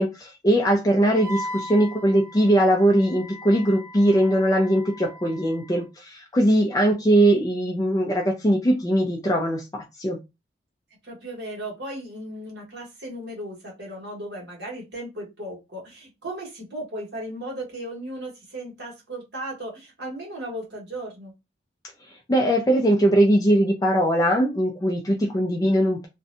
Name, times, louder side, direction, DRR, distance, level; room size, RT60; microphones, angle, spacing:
voice 1, 0.0-10.2 22.3-26.1, right 1 dB, 20° left, 0.4 m, -20 dB
Wind instrument woodwind instrument, 1.1-5.8, equal, 20° right, 1.2 m, -39 dB
voice 2, 11.0-21.3, right 1 dB, 65° right, 1.3 m, -36 dB
2.6 x 2.2 x 2.5 m
head